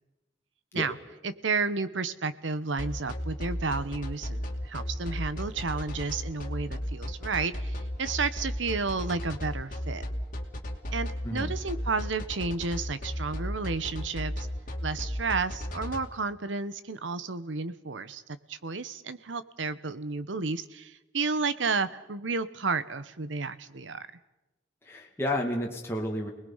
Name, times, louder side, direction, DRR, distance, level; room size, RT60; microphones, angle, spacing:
voice 1, 1.2-10.0 10.9-14.5 14.8-24.1, right 4 dB, 75° right, 13 dB, 1.0 m, -32 dB
sound 1, 2.8-16.0, equal, 45° left, 2.6 m, -34 dB
voice 2, 24.8-26.3, left 1 dB, 15° left, -2 dB, 2.2 m, -31 dB
30.0 x 20.0 x 5.6 m, 1.0 s
head